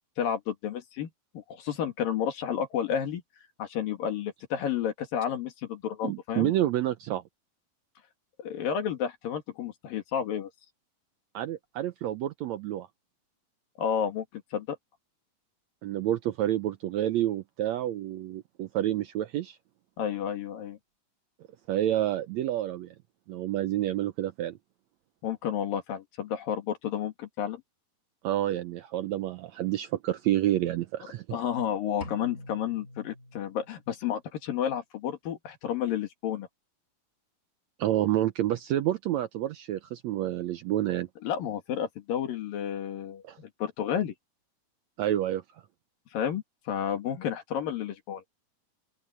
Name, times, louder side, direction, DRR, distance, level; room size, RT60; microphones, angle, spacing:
voice 1, 0.2-1.1 1.3-3.2 3.6-6.5 8.4-10.5 13.8-14.8 20.0-20.8 25.2-27.6 31.3-36.5 41.2-44.1 46.1-48.2, left 9 dB, 85° left, 4.0 m, -31 dB
voice 2, 6.0-7.2 11.3-12.9 15.8-19.6 21.7-22.9 23.3-24.5 28.2-31.2 37.8-41.1 43.2-43.4 45.0-45.4, right 13 dB, 80° right, 1.6 m, -29 dB
sound 1, 32.0-34.0, left 1 dB, 20° left, 6.3 m, -45 dB
open air
omnidirectional pair, 3.9 m